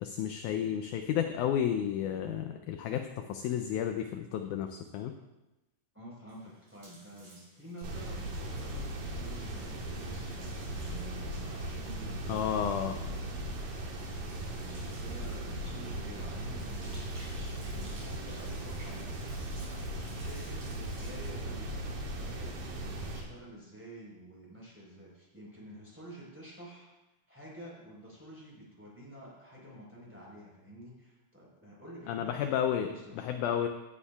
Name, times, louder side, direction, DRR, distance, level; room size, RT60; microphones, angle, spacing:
voice 1, 0.0-5.1 12.3-12.9 32.1-33.7, left 9 dB, 80° left, 6 dB, 1.8 m, -32 dB
voice 2, 5.9-13.1 14.4-17.2 17.6-26.9 27.3-33.3, right 1 dB, 5° right, -5 dB, 3.8 m, -49 dB
sound 1, 6.3-21.3, right 1 dB, 45° right, 5.3 m, -57 dB
sound 2, 7.8-23.2, right 1 dB, 70° right, 3.1 m, -38 dB
16.0 x 9.8 x 2.4 m, 1.0 s
omnidirectional pair, 4.0 m